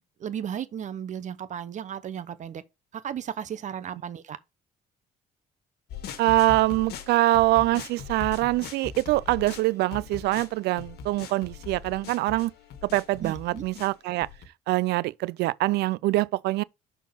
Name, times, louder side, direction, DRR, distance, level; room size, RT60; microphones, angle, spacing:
voice 1, 0.0-2.6 3.0-4.4 13.2-13.6, right 9 dB, 45° right, 0.9 m, -35 dB
sound 1, 5.9-14.5, left 6 dB, 70° left, 1.5 m, -41 dB
voice 2, 6.2-12.5 12.8-14.3 14.7-16.6, right 18 dB, 75° right, 0.4 m, -24 dB
6.0 x 4.5 x 5.6 m
cardioid pair, 110°, 17 cm